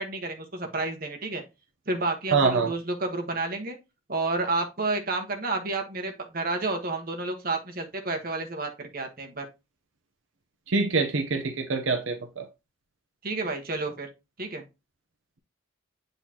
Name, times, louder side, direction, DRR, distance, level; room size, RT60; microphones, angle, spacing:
voice 1, 0.0-1.4 1.9-3.8 4.1-9.5 13.2-14.1 14.4-14.6, right 2 dB, 45° right, 1.3 m, -30 dB
voice 2, 2.3-2.7 10.7-12.4, right 4 dB, 75° right, 0.8 m, -25 dB
8.2 x 4.0 x 2.9 m
head